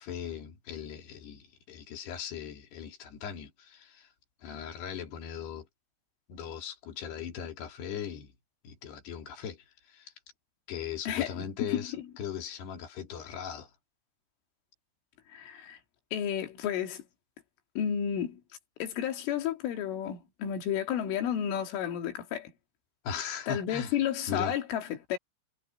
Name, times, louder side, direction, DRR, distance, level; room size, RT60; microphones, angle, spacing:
voice 1, 0.0-4.1 4.4-5.7 6.3-8.3 8.6-10.1 10.7-13.7 23.0-24.0 24.3-24.6, left 8 dB, 60° left, 5.2 m, -39 dB
voice 2, 11.1-11.4 11.7-11.9 15.3-15.8 16.1-17.0 17.8-18.4 18.8-22.5 23.5-25.2, left 9 dB, 75° left, 5.0 m, -32 dB
omnidirectional pair, 5.7 m